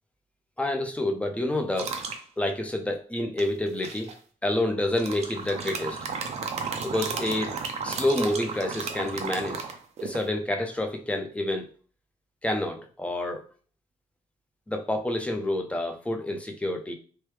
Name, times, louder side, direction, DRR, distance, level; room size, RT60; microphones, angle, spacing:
voice 1, 0.6-1.9 2.4-4.1 4.4-6.1 6.8-7.5 7.8-9.6 10.0-11.7 12.4-13.4 14.7-16.9, left 1 dB, 10° left, 4 dB, 0.5 m, -28 dB
sound 1, 1.8-2.2 3.4-4.1 4.9-10.3, right 5 dB, 55° right, 0.5 m, -34 dB
3.2 x 2.1 x 3.1 m, 0.40 s
cardioid pair, 130°, 13 cm